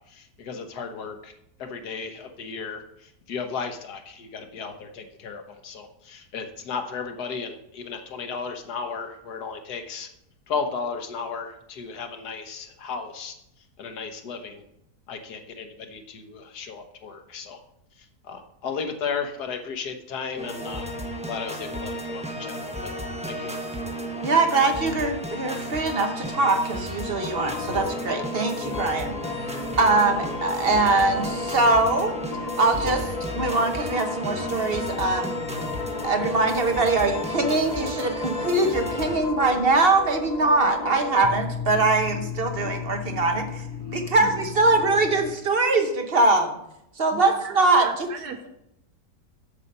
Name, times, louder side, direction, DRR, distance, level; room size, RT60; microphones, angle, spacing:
voice 1, 0.0-1.3 1.6-10.1 10.5-13.3 13.8-14.6 15.1-17.6 18.0-20.9 21.3-22.9 23.2-23.5, left 5 dB, 70° left, 6 dB, 1.6 m, -34 dB
sound 1, 20.4-39.2, equal, 5° right, 0.8 m, -33 dB
voice 2, 24.2-29.2 29.4-32.1 32.6-35.3 36.0-43.6 43.9-46.6 47.0-48.1, right 3 dB, 40° right, 5 dB, 1.0 m, -22 dB
sound 2, 27.3-45.4, left 4 dB, 40° left, 0.6 m, -34 dB
voice 3, 47.8-48.5, right 6 dB, 70° right, 6 dB, 1.2 m, -36 dB
8.3 x 7.4 x 5.4 m, 0.80 s
omnidirectional pair, 1.8 m